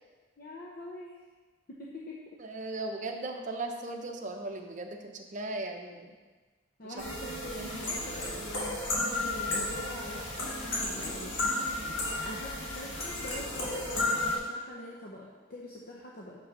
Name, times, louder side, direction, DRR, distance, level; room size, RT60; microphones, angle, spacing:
voice 1, 0.4-1.2 1.7-2.4 6.8-11.4 12.0-16.4, left 1 dB, 50° left, -3 dB, 0.7 m, -44 dB
voice 2, 2.4-6.1 6.8-6.9 7.5-7.8, right 2 dB, 40° right, 3 dB, 0.7 m, -38 dB
sound 1, 7.0-14.4, left 2 dB, 75° left, 1.7 m, -33 dB
6.3 x 5.4 x 5.3 m, 1.3 s
head